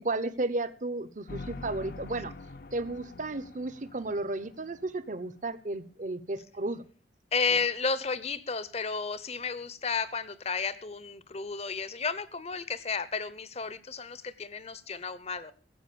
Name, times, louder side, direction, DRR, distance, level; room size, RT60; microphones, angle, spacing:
voice 1, 0.0-2.3 2.7-6.8, right 2 dB, 45° right, 14 dB, 1.0 m, -33 dB
sound 1, 1.3-5.4, left 3 dB, 55° left, 0.6 m, -45 dB
voice 2, 7.3-15.5, left 5 dB, 35° left, 16 dB, 0.9 m, -32 dB
15.5 x 8.0 x 6.9 m, 0.42 s
head